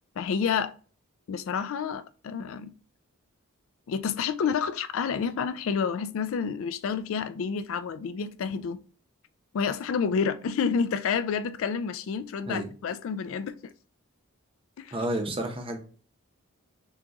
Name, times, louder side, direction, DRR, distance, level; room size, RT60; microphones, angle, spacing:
voice 1, 0.2-0.7 1.3-2.7 3.9-8.8 9.5-13.5 14.8-15.0, left 6 dB, 65° left, 0.3 m, -29 dB
voice 2, 14.9-15.8, right 1 dB, 25° right, 0.7 m, -30 dB
6.2 x 2.3 x 2.9 m
head